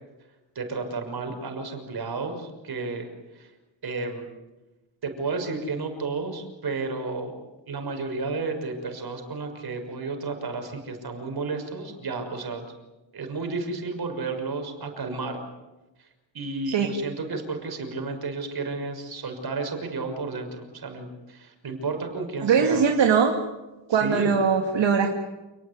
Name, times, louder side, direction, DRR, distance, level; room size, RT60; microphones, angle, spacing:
voice 1, 0.5-3.5 3.8-4.3 5.0-7.3 7.7-12.7 13.1-15.4 16.0-16.1 16.3-22.9 23.9-24.3, right 3 dB, 55° right, 5 dB, 6.2 m, -32 dB
voice 2, 22.4-23.3 23.9-25.1, right 6 dB, 70° right, 3 dB, 2.6 m, -21 dB
29.5 x 19.5 x 9.8 m, 1.1 s
wide cardioid pair, 135°, 45 cm